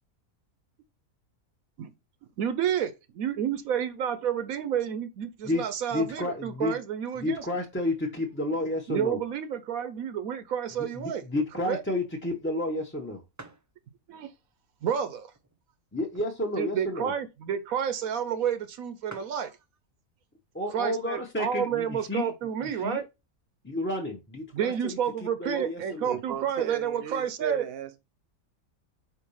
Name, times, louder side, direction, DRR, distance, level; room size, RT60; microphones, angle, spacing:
voice 1, 2.4-7.4 8.9-11.2 11.5-11.8 14.1-14.3 14.8-15.3 16.6-19.5 20.7-23.1 24.5-27.7, right 8 dB, 80° right, 1.1 m, -30 dB
voice 2, 5.9-6.8 7.2-9.2 10.8-13.2 15.9-17.1 20.5-22.3 22.6-23.0 23.6-26.2, left 1 dB, 10° left, 0.7 m, -31 dB
sound 1, 13.3-13.7 14.4-14.5 15.3-16.4 16.8-16.9 17.1-17.3 18.1-18.2 18.4-18.5 18.8-18.9 19.1-19.5 20.4-20.7 21.2-21.3 21.5-22.3, right 2 dB, 20° right, 0.4 m, -49 dB
voice 3, 26.0-28.0, right 10 dB, 50° right, 0.9 m, -35 dB
4.7 x 4.2 x 5.5 m
omnidirectional pair, 1.5 m